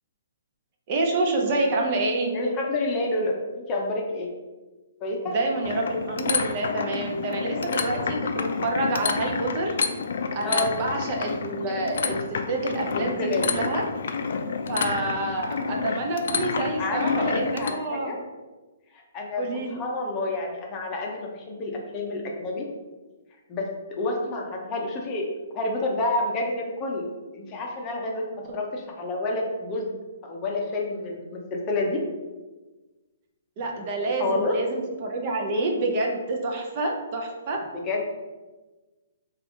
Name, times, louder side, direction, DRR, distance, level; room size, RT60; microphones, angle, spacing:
voice 1, 0.9-2.3 5.2-9.7 10.3-13.8 14.7-18.2 19.4-19.8 33.6-37.7, right 2 dB, 40° right, 1 dB, 0.6 m, -28 dB
voice 2, 2.3-4.3 5.0-5.3 10.4-10.8 12.9-13.7 16.8-18.2 18.9-19.4 19.7-22.7 23.5-23.7 24.0-27.1 27.3-29.9 30.2-32.0 34.2-34.6 37.7-38.0, left 2 dB, 25° left, 0 dB, 0.6 m, -29 dB
sound 1, 5.6-17.7, left 5 dB, 65° left, 0.3 m, -29 dB
3.3 x 2.4 x 3.8 m, 1.2 s
hypercardioid pair, 150°, 0 cm